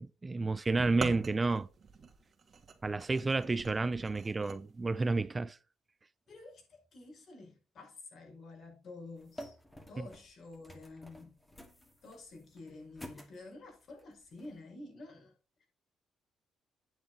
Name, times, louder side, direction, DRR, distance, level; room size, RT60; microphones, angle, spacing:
voice 1, 0.0-1.7 2.8-5.6, right 3 dB, 25° right, 0.5 m, -31 dB
sound 1, 0.8-4.6, right 5 dB, 45° right, 2.0 m, -43 dB
voice 2, 6.3-9.6 9.9-11.4 12.0-15.3 15.6-15.7, left 2 dB, 60° left, 5.3 m, -50 dB
sound 2, 9.2-14.6, equal, 10° left, 2.3 m, -52 dB
9.4 x 7.6 x 4.1 m
cardioid pair, 90°, 0 cm